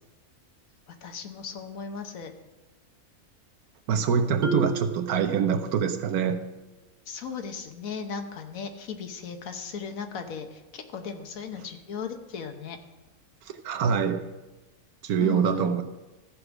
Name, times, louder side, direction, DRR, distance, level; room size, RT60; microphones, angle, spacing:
voice 1, 1.0-2.3 7.1-12.8 15.2-15.7, left 6 dB, 70° left, 6 dB, 1.3 m, -37 dB
voice 2, 3.9-6.4 13.6-14.2 15.0-15.8, right 7 dB, 90° right, 8 dB, 1.3 m, -24 dB
Marimba xylophone, 4.4-6.2, right 3 dB, 45° right, 1.5 m, -34 dB
14.0 x 4.9 x 6.0 m, 1.1 s
omnidirectional pair, 1.5 m